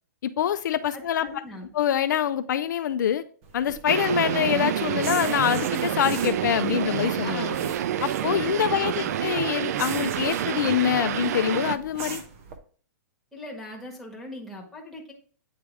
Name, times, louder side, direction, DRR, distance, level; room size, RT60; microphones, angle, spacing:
voice 1, 0.2-1.4 1.7-3.2 3.5-7.6 8.0-12.2, left 10 dB, 75° left, 11 dB, 0.4 m, -25 dB
voice 2, 0.9-1.7 7.2-7.6 8.7-9.2 13.3-15.1, left 1 dB, ahead, -2 dB, 1.4 m, -40 dB
sound 1, 3.4-12.6, right 5 dB, 45° right, 0.9 m, -41 dB
sound 2, 3.9-11.8, right 10 dB, 60° right, 0.4 m, -28 dB
8.7 x 3.3 x 3.3 m, 0.43 s
hypercardioid pair, 150°, 10 cm